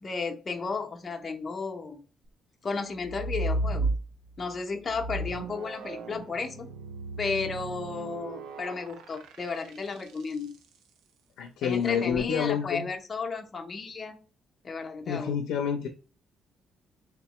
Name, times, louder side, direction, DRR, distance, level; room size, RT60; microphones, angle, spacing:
voice 1, 0.0-2.0 2.6-3.9 4.4-6.7 7.2-10.5 11.6-14.2 14.6-15.3, left 4 dB, 35° left, 0.6 m, -33 dB
sound 1, 3.0-4.4 4.9-10.4 11.9-12.2, right 2 dB, 85° right, 0.5 m, -34 dB
voice 2, 11.4-12.9 15.1-15.9, left 7 dB, 85° left, 0.4 m, -28 dB
3.5 x 2.9 x 3.0 m
cardioid pair, 90°, 0 cm